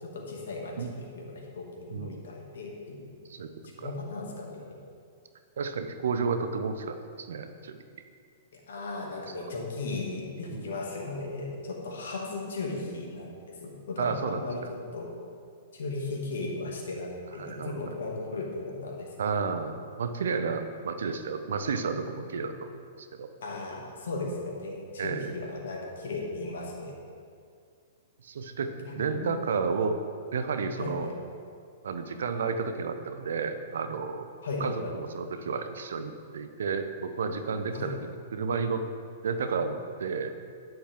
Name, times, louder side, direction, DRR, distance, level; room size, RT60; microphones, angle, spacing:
voice 1, 0.0-3.1 3.5-4.8 8.5-15.1 15.7-19.1 23.4-27.0 28.7-29.4 30.8-31.1 34.4-35.0 37.7-37.9, left 3 dB, 65° left, -1 dB, 2.4 m, -36 dB
voice 2, 1.9-2.2 3.3-3.5 3.8-3.9 5.6-7.8 9.0-9.1 10.5-10.7 14.0-14.7 17.4-17.9 19.2-23.3 25.0-25.4 28.2-30.0 30.3-31.1 31.8-34.3 34.6-38.8 39.2-40.3, right 5 dB, 65° right, 8 dB, 0.9 m, -32 dB
12.5 x 10.5 x 3.7 m, 2.3 s
figure-of-eight pair, 105°, 0 cm